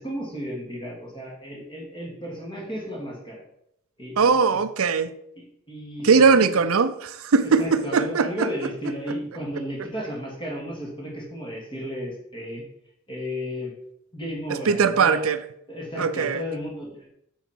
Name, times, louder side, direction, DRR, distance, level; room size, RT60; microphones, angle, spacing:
voice 1, 0.0-3.4 4.0-4.6 5.4-6.5 7.6-12.6 13.1-13.7 14.1-15.2 15.7-17.1, equal, 25° left, 2.6 m, -34 dB
voice 2, 4.2-5.1 6.0-8.5 14.5-15.4 16.0-16.4, right 5 dB, 85° right, 0.6 m, -20 dB
9.2 x 6.4 x 4.5 m
head